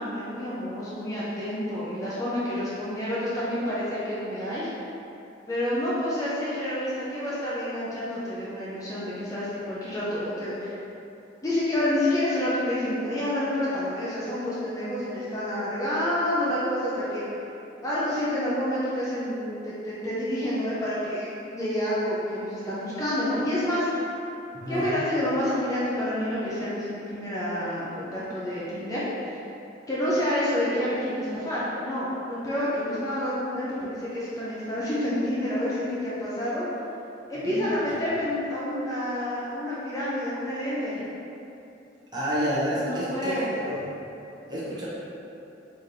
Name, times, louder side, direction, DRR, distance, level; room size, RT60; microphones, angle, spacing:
voice 1, 0.0-4.7 5.5-10.7 11.4-17.2 17.8-24.1 24.7-29.0 29.9-36.7 37.3-41.0 42.8-43.5, left 1 dB, 20° left, -9 dB, 0.5 m, -28 dB
voice 2, 24.5-24.9 37.3-37.8 42.1-43.8 44.5-44.9, equal, 20° right, -9 dB, 0.8 m, -29 dB
4.1 x 3.2 x 2.6 m, 2.8 s
head